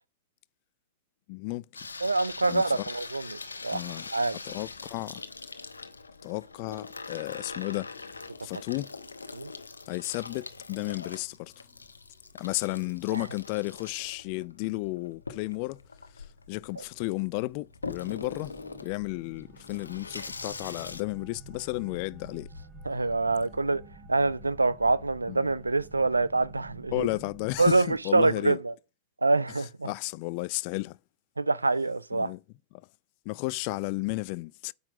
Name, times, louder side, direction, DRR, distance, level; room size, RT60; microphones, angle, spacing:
voice 1, 1.3-1.6 2.5-2.9 3.7-4.1 4.5-5.2 6.2-7.9 8.4-8.9 9.9-11.5 12.4-15.8 16.2-18.5 18.8-22.5 25.3-25.5 26.9-28.6 29.8-31.0 32.1-32.4 33.3-34.7, left 23 dB, 45° left, 0.4 m, -33 dB
Water tap faucet / Sink (filling or washing), 1.7-21.0, left 4 dB, 80° left, 0.8 m, -43 dB
voice 2, 2.0-3.4 3.6-4.4 9.3-9.5 13.1-13.2 16.8-16.9 22.8-23.8 24.1-27.1 27.6-28.7 29.2-29.9 31.4-32.3, right 3 dB, 80° right, 0.5 m, -26 dB
sound 1, 17.8-27.9, right 2 dB, 35° right, 3.9 m, -49 dB
8.9 x 5.6 x 5.9 m
figure-of-eight pair, 90°, 0 cm